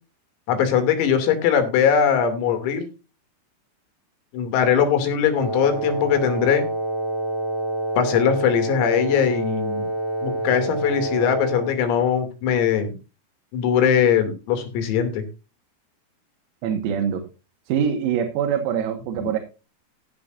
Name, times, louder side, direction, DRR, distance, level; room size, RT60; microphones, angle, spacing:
voice 1, 0.5-2.9 4.3-6.7 8.0-9.9 10.2-13.0 13.5-15.2, left 8 dB, 85° left, 8 dB, 5.4 m, -21 dB
Wind instrument woodwind instrument, 5.3-11.8, right 2 dB, 40° right, 5.3 m, -27 dB
voice 2, 16.6-17.3 17.7-19.4, right 8 dB, 85° right, 5 dB, 4.3 m, -24 dB
16.0 x 10.5 x 2.6 m, 0.29 s
omnidirectional pair, 5.9 m